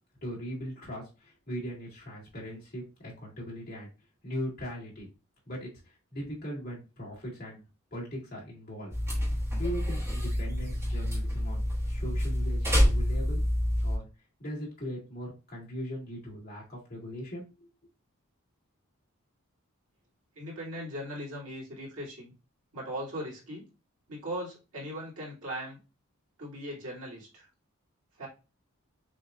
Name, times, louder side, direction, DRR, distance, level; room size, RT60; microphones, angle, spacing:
voice 1, 0.2-3.9 4.2-5.1 5.5-7.6 7.9-8.9 9.5-11.6 11.9-13.4 13.8-14.0 14.4-17.7, equal, 45° left, -5 dB, 2.0 m, -39 dB
sound 1, 8.9-14.0, equal, 10° right, 1.0 m, -27 dB
voice 2, 20.3-22.3 22.7-23.6 24.1-25.8 26.4-27.5 28.2-28.3, equal, 80° right, -5 dB, 2.1 m, -39 dB
6.2 x 2.4 x 2.5 m, 0.30 s
head